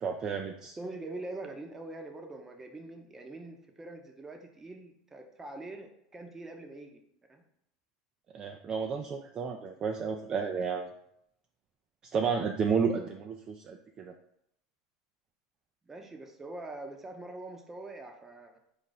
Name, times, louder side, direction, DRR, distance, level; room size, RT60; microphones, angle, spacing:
voice 1, 0.0-0.8 8.3-10.9 12.0-14.1, right 6 dB, 35° right, 3 dB, 0.4 m, -32 dB
voice 2, 0.8-7.0 7.3-7.4 15.9-18.6, right 2 dB, 15° right, 3 dB, 0.7 m, -43 dB
4.2 x 2.5 x 4.0 m, 0.74 s
hypercardioid pair, 95°, 2 cm